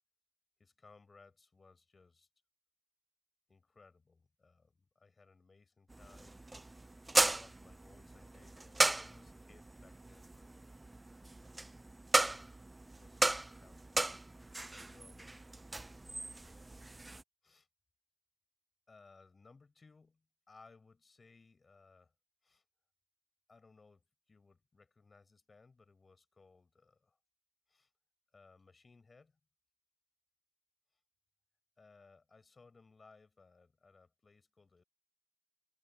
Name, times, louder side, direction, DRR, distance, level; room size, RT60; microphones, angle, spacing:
voice 1, 0.6-2.3 3.5-6.5 7.1-10.7 12.1-12.6 12.9-14.0 14.7-15.8 17.4-17.7 18.9-22.1 22.4-22.6 23.5-27.2 27.7-27.9 28.3-29.4 30.9-31.0 31.8-34.8, left 4 dB, 30° left, 6.9 m, -63 dB
sound 1, 5.9-17.2, right 2 dB, 15° right, 0.3 m, -36 dB
cardioid pair, 90°, 0 cm